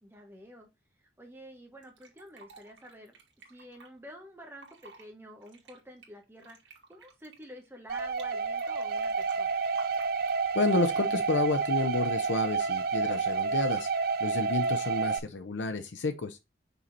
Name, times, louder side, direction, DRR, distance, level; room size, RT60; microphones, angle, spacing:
voice 1, 0.0-0.7 1.0-3.2 3.5-6.6 6.9-9.6, equal, 15° right, 1.3 m, -49 dB
Fill (with liquid), 1.8-3.9 4.5-5.0 5.4-8.2 8.6-11.0 11.5-11.9, right 4 dB, 80° right, 1.9 m, -54 dB
sound 1, 7.9-15.2, right 5 dB, 55° right, 0.5 m, -29 dB
voice 2, 10.5-13.9 14.2-16.4, left 3 dB, 85° left, 0.6 m, -30 dB
5.5 x 4.3 x 3.9 m
head